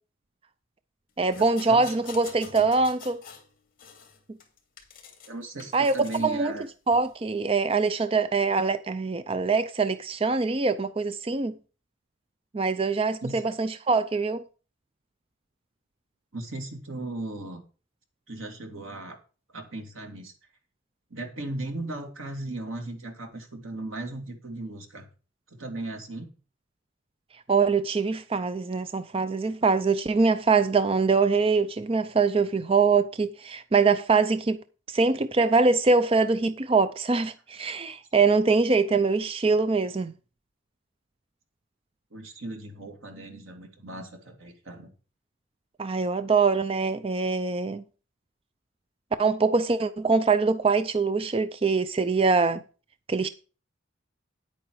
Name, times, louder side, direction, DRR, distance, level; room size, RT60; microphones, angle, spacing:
voice 1, 1.2-3.2 5.7-5.9 6.2-6.5 6.9-11.5 12.5-14.4 27.5-34.6 34.9-40.1 45.8-47.8 49.2-52.6 53.1-53.3, right 4 dB, 30° right, 0.4 m, -23 dB
sound 1, 1.3-3.5 3.8-5.3 5.6-6.3 6.9-7.1, left 6 dB, 45° left, 2.7 m, -46 dB
voice 2, 5.3-6.7 13.2-13.4 16.3-17.6 18.3-19.2 19.5-20.3 21.1-25.1 25.6-26.3 38.2-38.3 42.1-44.9, right 2 dB, 85° right, 2.5 m, -37 dB
9.7 x 8.8 x 4.7 m
head